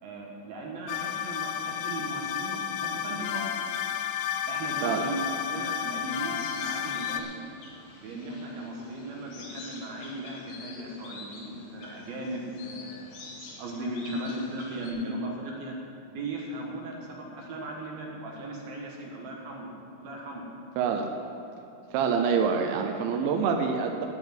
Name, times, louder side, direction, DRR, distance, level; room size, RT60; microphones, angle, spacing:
voice 1, 0.0-3.7 4.4-7.3 8.0-13.1 13.6-15.8 16.1-20.5, right 1 dB, 65° right, -1 dB, 2.7 m, -37 dB
sound 1, 0.9-7.2, left 9 dB, 85° left, 2.4 m, -32 dB
sound 2, 6.1-14.9, left 3 dB, 70° left, 3.8 m, -47 dB
voice 2, 20.8-21.1 21.9-24.1, right 6 dB, 80° right, 3 dB, 2.8 m, -26 dB
11.0 x 7.6 x 9.1 m, 2.8 s
omnidirectional pair, 5.7 m